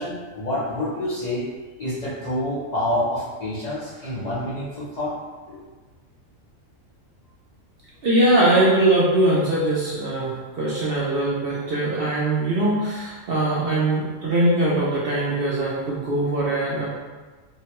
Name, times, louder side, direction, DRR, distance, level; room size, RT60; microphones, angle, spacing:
voice 1, 0.0-1.4 1.8-5.1 5.5-5.6, left 1 dB, 45° left, -9 dB, 0.6 m, -27 dB
voice 2, 8.0-16.9, right 1 dB, 60° right, -6 dB, 0.6 m, -21 dB
3.7 x 2.2 x 2.8 m, 1.3 s
omnidirectional pair, 1.4 m